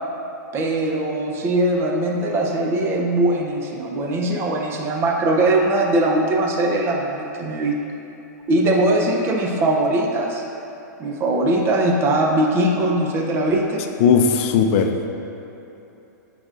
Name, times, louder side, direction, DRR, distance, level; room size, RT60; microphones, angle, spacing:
voice 1, 0.5-7.8 8.5-10.4 11.0-13.8, right 1 dB, 25° right, 0 dB, 0.7 m, -20 dB
voice 2, 14.0-15.2, left 6 dB, 45° left, 5 dB, 0.5 m, -17 dB
8.6 x 5.0 x 2.5 m, 3.0 s
hypercardioid pair, 135°, 10 cm